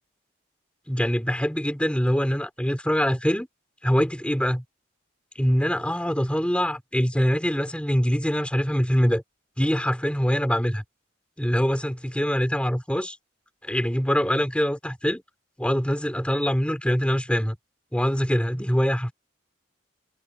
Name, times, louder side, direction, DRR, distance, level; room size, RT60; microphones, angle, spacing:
voice 1, 0.9-3.5 3.8-4.6 5.3-9.2 9.6-10.8 11.4-13.2 13.6-15.2 15.6-17.6 17.9-19.1, equal, 5° left, 4.4 m, -24 dB
head